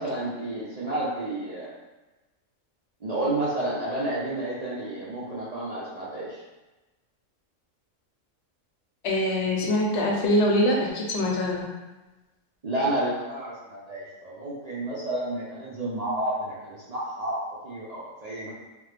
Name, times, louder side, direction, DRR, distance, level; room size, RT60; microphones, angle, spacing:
voice 1, 0.0-1.7 3.0-6.4 12.6-18.5, right 1 dB, 50° right, -8 dB, 0.5 m, -30 dB
voice 2, 9.0-11.7, left 1 dB, 70° left, -1 dB, 0.9 m, -23 dB
3.3 x 2.1 x 3.2 m, 1.1 s
omnidirectional pair, 1.3 m